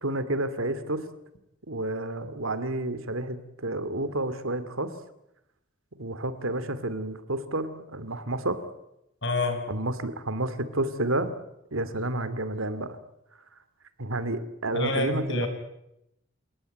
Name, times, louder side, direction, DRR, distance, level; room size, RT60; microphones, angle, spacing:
voice 1, 0.0-1.1 1.7-4.9 6.0-8.6 9.7-11.3 11.7-13.0 14.0-15.5, right 2 dB, 90° right, 13 dB, 2.5 m, -30 dB
voice 2, 9.2-9.6 14.7-15.5, left 2 dB, 60° left, 7 dB, 5.7 m, -27 dB
29.0 x 18.5 x 9.3 m, 0.85 s
head